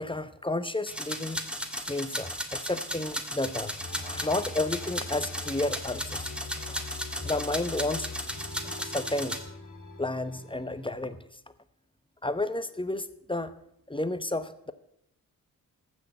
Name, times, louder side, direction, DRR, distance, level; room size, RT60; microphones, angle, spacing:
voice 1, 0.0-1.5 1.9-6.3 6.7-6.8 7.2-8.1 8.6-9.4 10.0-11.2 12.2-13.5 13.9-14.7, left 2 dB, 15° left, 12 dB, 0.9 m, -32 dB
sound 1, 0.9-9.4, equal, 5° right, 1.7 m, -35 dB
sound 2, 3.8-11.2, left 3 dB, 55° left, 2.0 m, -43 dB
14.5 x 6.4 x 7.1 m, 0.74 s
cardioid pair, 60°, 35 cm